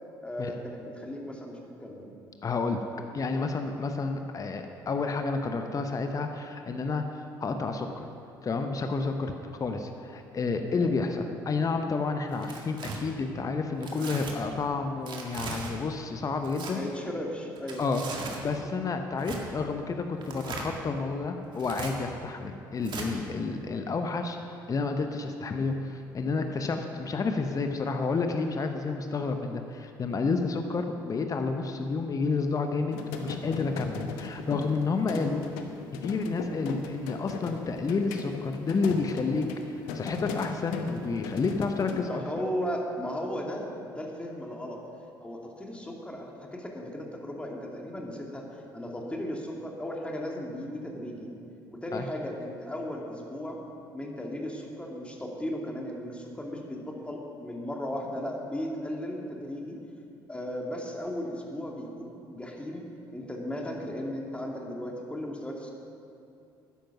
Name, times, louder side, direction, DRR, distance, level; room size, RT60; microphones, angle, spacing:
voice 1, 0.2-2.2 10.8-10.9 16.7-17.9 22.3-22.4 23.6-23.8 30.5-30.6 41.9-44.8 45.2-48.4 48.7-51.3 51.7-53.6 53.9-59.8 60.3-62.8 63.1-65.7, equal, 10° left, -1 dB, 2.5 m, -36 dB
voice 2, 2.4-2.9 3.1-7.0 7.4-8.1 8.4-9.3 9.6-16.8 17.8-18.0 18.4-24.4 24.7-35.4 36.0-42.2 51.9-52.0, left 4 dB, 35° left, 6 dB, 1.0 m, -30 dB
Tearing, 12.3-13.0 13.8-14.3 15.1-15.7 16.4-16.7 17.6-18.4 19.2-19.4 20.2-20.7 21.5-21.9 22.8-23.1, right 4 dB, 45° right, 1.9 m, -38 dB
sound 1, 32.9-42.0, left 5 dB, 65° left, 1.0 m, -38 dB
13.0 x 10.5 x 6.0 m, 2.6 s
figure-of-eight pair, 50°, 11 cm